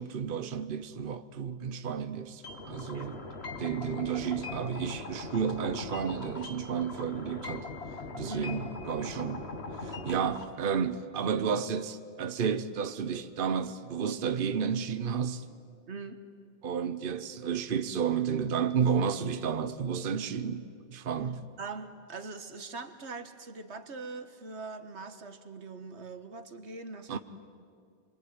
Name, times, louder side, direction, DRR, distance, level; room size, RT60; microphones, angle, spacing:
voice 1, 0.0-3.2 3.6-7.7 8.1-9.5 9.8-15.4 16.6-21.4 27.1-27.2, right 7 dB, 55° right, 1.0 m, -32 dB
sound 1, 2.4-10.4, left 3 dB, 70° left, 2.2 m, -40 dB
voice 2, 2.9-3.2 8.2-8.6 15.9-16.2 21.6-27.2, right 3 dB, 90° right, 1.7 m, -42 dB
26.5 x 22.5 x 9.5 m
omnidirectional pair, 1.1 m